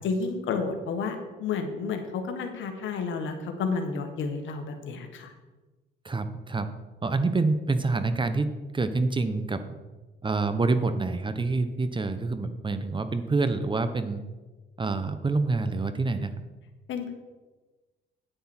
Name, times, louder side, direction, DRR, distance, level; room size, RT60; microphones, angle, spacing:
voice 1, 0.0-5.3 16.9-17.1, left 4 dB, 75° left, 5 dB, 1.5 m, -31 dB
voice 2, 6.0-6.7 7.0-9.8 10.2-14.2 14.8-16.3, right 3 dB, 25° right, 10 dB, 0.8 m, -27 dB
9.6 x 9.3 x 4.4 m, 1.2 s
cardioid pair, 90°, 20 cm